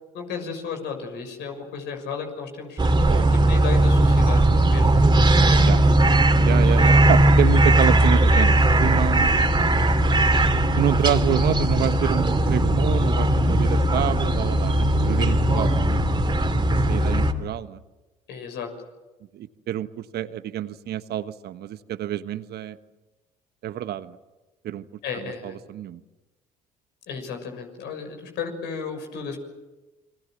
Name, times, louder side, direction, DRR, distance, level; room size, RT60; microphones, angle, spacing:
voice 1, 0.1-3.0 3.3-4.4 4.7-5.1 5.4-5.9 15.2-15.6 18.3-18.7 25.0-25.6 27.1-29.4, left 6 dB, 70° left, 5 dB, 6.4 m, -34 dB
sound 1, 2.8-17.3, right 1 dB, 25° right, 3.1 m, -18 dB
voice 2, 6.4-9.4 10.8-16.1 16.5-17.8 19.3-22.8 23.6-24.2 24.6-24.8 25.4-26.0, right 11 dB, 60° right, 12 dB, 1.3 m, -28 dB
29.0 x 23.0 x 7.6 m, 1.1 s
hypercardioid pair, 60°, 19 cm